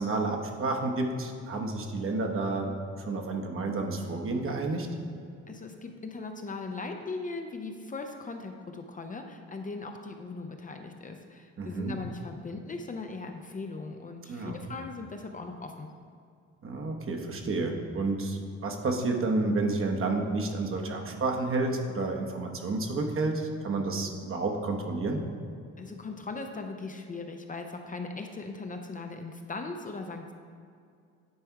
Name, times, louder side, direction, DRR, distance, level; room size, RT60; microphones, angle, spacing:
voice 1, 0.0-2.8 3.1-4.9 11.6-11.9 14.3-14.6 16.6-25.2, right 3 dB, 45° right, 2 dB, 0.9 m, -30 dB
voice 2, 5.5-15.9 25.8-30.3, left 3 dB, 25° left, 4 dB, 0.5 m, -39 dB
9.5 x 3.4 x 4.6 m, 2.3 s
cardioid pair, 90°, 30 cm